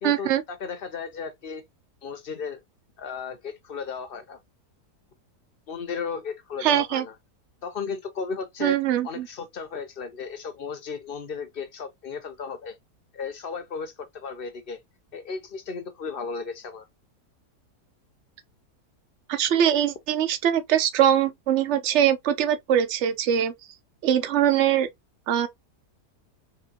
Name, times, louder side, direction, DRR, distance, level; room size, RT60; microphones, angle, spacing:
voice 1, 0.0-0.4 6.6-7.0 8.6-9.3 19.3-23.5 24.0-24.9 25.3-25.5, right 10 dB, 55° right, 0.9 m, -22 dB
voice 2, 0.6-1.6 2.0-2.6 3.0-4.4 5.7-7.1 7.6-8.8 9.0-12.7 13.1-14.8 15.1-16.8, left 5 dB, 45° left, 0.8 m, -35 dB
4.9 x 3.2 x 2.9 m
omnidirectional pair, 1.7 m